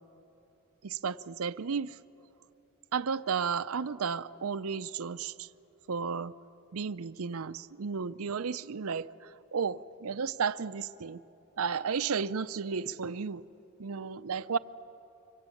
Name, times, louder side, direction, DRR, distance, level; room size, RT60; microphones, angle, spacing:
voice 1, 0.8-2.0 2.9-5.5 5.9-6.3 6.7-11.2 11.6-13.4 13.8-14.6, right 6 dB, 75° right, 14 dB, 0.6 m, -33 dB
24.5 x 24.0 x 9.1 m, 2.9 s
head